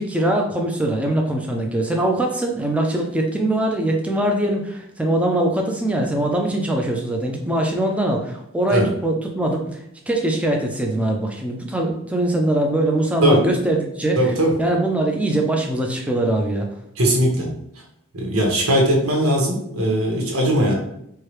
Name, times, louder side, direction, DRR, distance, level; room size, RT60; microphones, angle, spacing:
voice 1, 0.0-9.8 10.1-14.3 14.6-16.7, right 1 dB, 5° right, 1 dB, 0.5 m, -22 dB
voice 2, 14.2-14.5 17.0-17.5 18.1-20.7, right 1 dB, 90° right, -1 dB, 1.2 m, -19 dB
4.7 x 2.3 x 3.1 m, 0.74 s
head